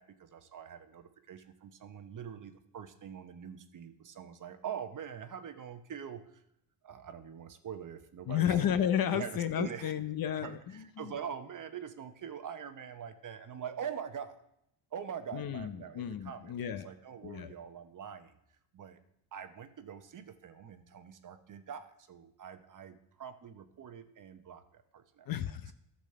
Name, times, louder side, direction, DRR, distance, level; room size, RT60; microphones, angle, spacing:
voice 1, 0.0-6.4 6.8-8.7 9.1-9.9 10.3-14.4 14.9-18.4 18.7-19.0 19.3-25.3, right 8 dB, 40° right, 8 dB, 0.9 m, -44 dB
voice 2, 8.3-11.1 15.3-16.9 17.2-17.5 25.3-25.7, left 9 dB, 45° left, 11 dB, 0.7 m, -32 dB
12.0 x 4.2 x 6.6 m, 0.77 s
cardioid pair, 90°, 50 cm